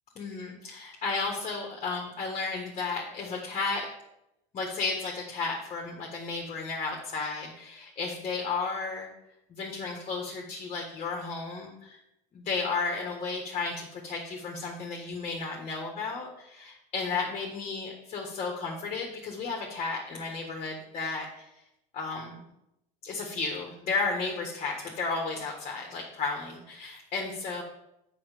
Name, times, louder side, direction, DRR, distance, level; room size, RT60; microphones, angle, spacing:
voice 1, 0.1-3.9 4.5-9.1 9.5-12.0 12.3-21.4 21.9-22.4 23.0-27.6, left 4 dB, 35° left, 0 dB, 1.5 m, -33 dB
7.1 x 6.0 x 5.0 m, 0.85 s
supercardioid pair, 115°, 20 cm